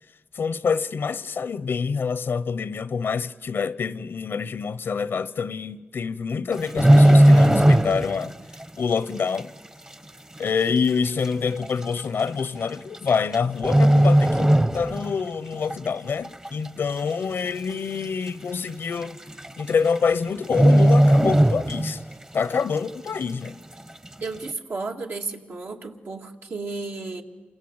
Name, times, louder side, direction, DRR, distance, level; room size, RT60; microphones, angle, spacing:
voice 1, 0.3-8.3 8.8-9.5 10.4-19.2 19.6-22.0 22.3-23.6, left 5 dB, 80° left, 0.8 m, -26 dB
sound 1, 6.5-8.3 8.5-8.8 9.4-9.5 10.4-10.5 10.7-10.8 11.6-11.8 12.9-13.3 13.6-15.2 15.5-15.8 16.2-16.8 17.1-17.2 17.4-17.5 18.0-18.1 19.0-19.1 19.4-19.7 20.0-20.1 20.5-22.1 22.5-22.6, right 1 dB, 20° right, 0.9 m, -17 dB
voice 2, 24.2-27.2, right 3 dB, 75° right, 2.2 m, -33 dB
28.0 x 25.0 x 8.1 m
wide cardioid pair, 80°, 4 cm